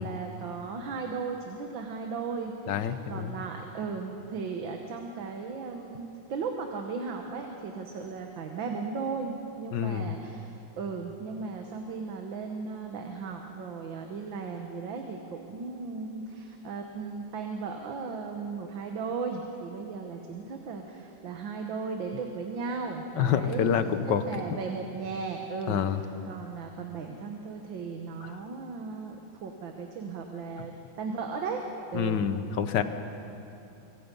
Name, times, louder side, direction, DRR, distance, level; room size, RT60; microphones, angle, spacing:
voice 1, 0.0-6.0 6.3-10.5 10.8-29.2 29.4-31.6 31.9-32.3, right 4 dB, 70° right, 3 dB, 2.0 m, -36 dB
voice 2, 2.7-3.4 9.7-10.1 23.2-24.2 24.5-24.6 25.7-26.0 28.2-28.3 31.9-32.8, left 8 dB, 65° left, 10 dB, 1.6 m, -27 dB
25.0 x 24.5 x 5.4 m, 2.8 s
omnidirectional pair, 2.2 m